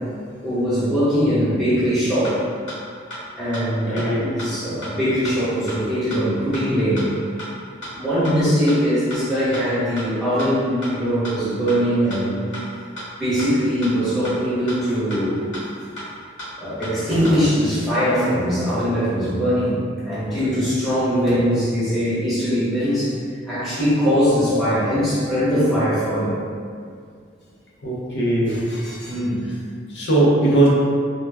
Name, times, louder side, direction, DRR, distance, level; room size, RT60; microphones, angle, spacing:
voice 1, 0.4-2.4 3.3-7.1 7.9-12.3 13.2-15.5 16.6-23.2 23.5-26.4 29.1-29.4, equal, ahead, -13 dB, 1.0 m, -21 dB
sound 1, 2.2-2.3 2.7-2.8 3.1-3.2 3.5-3.6 4.0-4.1 4.4-4.5 4.8-4.9 5.2-5.3 5.7-5.8 6.1-6.2 6.5-6.6 7.0-7.1 7.4-7.5 7.8-7.9 8.2-8.3 8.7-8.8 9.1-9.2 9.5-9.6 10.0-10.1 10.4-10.5 10.8-10.9 11.2-11.3 11.7-11.8 12.1-12.2 12.5-12.6 13.0-13.1 13.4-13.5 13.8-13.9 14.2-14.3 14.7-14.8 15.1-15.2 15.5-15.6 16.0-16.1 16.4-16.5 16.8-16.9 17.2-17.3, equal, 80° left, 1.1 m, -33 dB
voice 2, 3.9-4.2 27.8-29.2 29.9-30.7, right 2 dB, 60° left, -5 dB, 0.6 m, -19 dB
2.2 x 2.2 x 3.3 m, 2.1 s
head